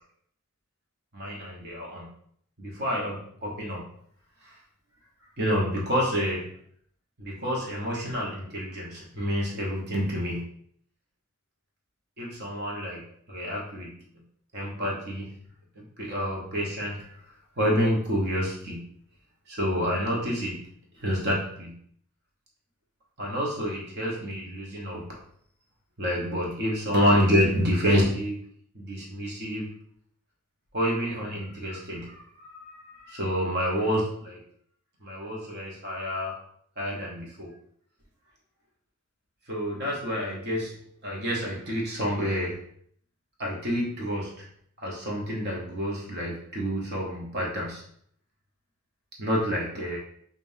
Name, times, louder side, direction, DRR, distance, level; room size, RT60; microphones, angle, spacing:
voice 1, 1.1-2.1 2.6-3.8 5.4-6.5 7.2-10.4 12.2-13.0 13.3-13.9 14.5-15.3 15.8-17.0 17.6-18.9 19.5-20.6 21.0-21.7 23.2-25.2 26.0-28.4 28.7-29.7 30.7-34.4 35.0-36.3 36.8-37.5 39.5-40.7 41.0-42.6 43.4-44.3 44.8-47.8 49.2-50.0, equal, 45° right, -3 dB, 1.1 m, -28 dB
5.2 x 2.6 x 2.7 m, 0.64 s
head